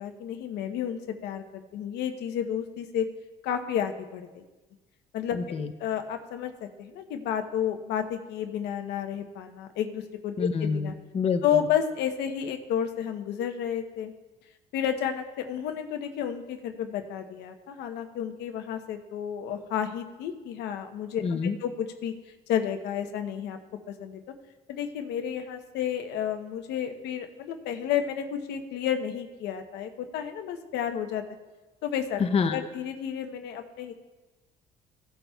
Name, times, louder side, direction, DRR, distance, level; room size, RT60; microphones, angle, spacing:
voice 1, 0.0-3.1 3.4-4.4 5.1-5.4 5.8-10.9 11.4-14.1 14.7-22.1 22.5-23.6 23.9-24.2 24.7-31.2 31.8-32.2 32.5-33.9, left 9 dB, 80° left, 6 dB, 0.9 m, -31 dB
voice 2, 5.3-5.7 10.4-11.6 21.2-21.6 32.2-32.6, left 5 dB, 35° left, 7 dB, 0.7 m, -27 dB
16.5 x 8.7 x 2.3 m, 1.2 s
cardioid pair, 110°, 17 cm